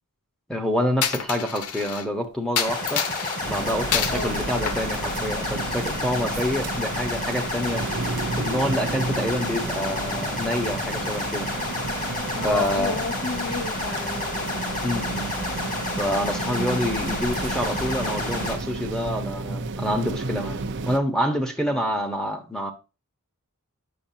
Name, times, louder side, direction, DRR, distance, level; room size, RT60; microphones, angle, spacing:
voice 1, 0.5-3.0 3.4-7.8 8.3-11.5 12.4-13.0 14.8-15.3 16.0-20.6 20.9-22.7, equal, 5° left, 1.1 m, -27 dB
Coin (dropping), 1.0-2.0 2.6-3.4 3.9-4.3 4.7-5.7, left 8 dB, 85° left, 0.8 m, -28 dB
sound 1, 2.6-18.5, left 2 dB, 35° left, 2.6 m, -30 dB
sound 2, 3.4-21.0, right 3 dB, 55° right, 0.6 m, -32 dB
voice 2, 4.1-4.4 12.4-14.7 16.4-16.8 21.7-21.9, left 4 dB, 65° left, 2.5 m, -32 dB
8.5 x 6.7 x 2.8 m
head